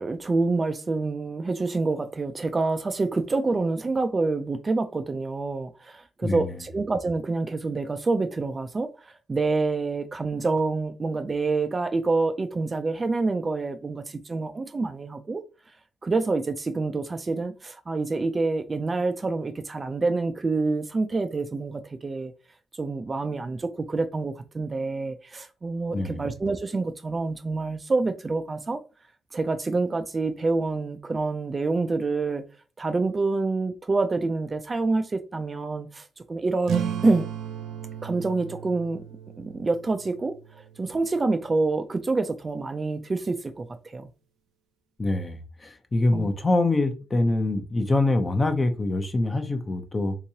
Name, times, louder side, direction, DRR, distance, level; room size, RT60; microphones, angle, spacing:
voice 1, 0.0-15.4 16.0-22.3 22.8-28.8 29.3-32.4 32.8-37.3 38.0-39.0 39.4-44.1 46.1-46.3, right 3 dB, 30° right, 0.4 m, -27 dB
voice 2, 6.2-6.5 25.9-26.2 45.0-50.2, left 2 dB, 30° left, 0.7 m, -25 dB
sound 1, 36.6-41.7, right 8 dB, 90° right, 0.5 m, -36 dB
3.6 x 2.9 x 2.8 m
cardioid pair, 85°, 0 cm